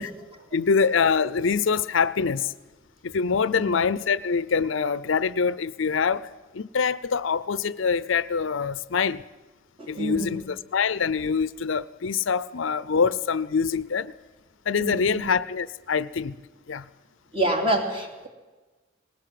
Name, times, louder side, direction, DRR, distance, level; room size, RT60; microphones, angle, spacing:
voice 1, 0.0-0.4 3.5-3.8 9.8-10.5 14.8-15.2 17.3-18.3, right 1 dB, 25° right, 2.8 m, -28 dB
voice 2, 0.5-2.5 3.0-6.3 6.5-9.2 9.9-14.1 14.7-16.4 16.7-16.9, left 5 dB, 75° left, 0.6 m, -24 dB
20.0 x 18.5 x 7.7 m
head